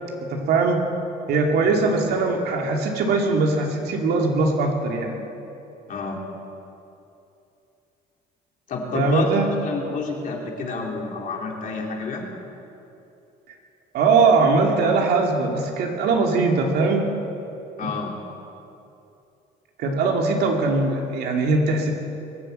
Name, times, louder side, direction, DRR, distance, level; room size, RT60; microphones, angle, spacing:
voice 1, 0.3-0.8 1.3-5.2 8.9-9.5 13.9-17.1 17.8-17.9 19.8-21.9, right 3 dB, 75° right, 1 dB, 2.5 m, -21 dB
voice 2, 5.9-6.2 8.7-12.3 17.8-18.1, left 4 dB, 50° left, 0 dB, 3.0 m, -29 dB
22.0 x 8.2 x 7.9 m, 2.7 s
cardioid pair, 110°, 17 cm